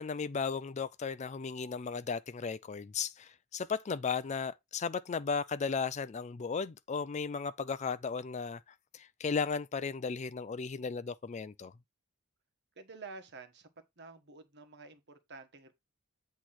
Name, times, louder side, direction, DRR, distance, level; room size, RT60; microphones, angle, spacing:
voice 1, 0.0-11.7, left 5 dB, 35° left, 0.4 m, -35 dB
voice 2, 12.8-13.7 14.0-15.7, right 4 dB, 55° right, 1.4 m, -50 dB
8.3 x 3.1 x 5.8 m
head